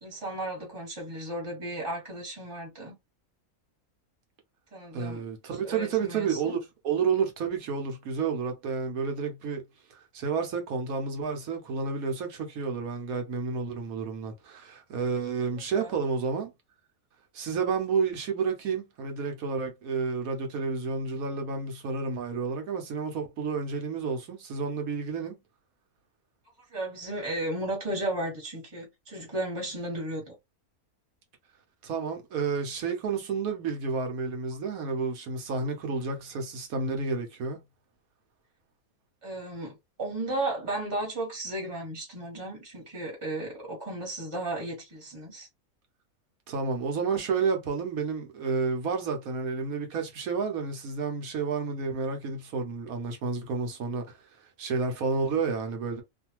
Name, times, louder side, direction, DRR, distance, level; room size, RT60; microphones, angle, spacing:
voice 1, 0.0-2.9 4.7-5.2 5.6-6.5 15.7-15.9 26.7-30.3 39.2-45.5, right 1 dB, 20° right, 1.3 m, -34 dB
voice 2, 4.9-6.6 6.8-9.6 9.9-16.5 17.3-25.4 31.8-37.6 46.5-54.2 54.6-56.0, right 5 dB, 70° right, 1.3 m, -30 dB
2.7 x 2.5 x 2.9 m
omnidirectional pair, 1.6 m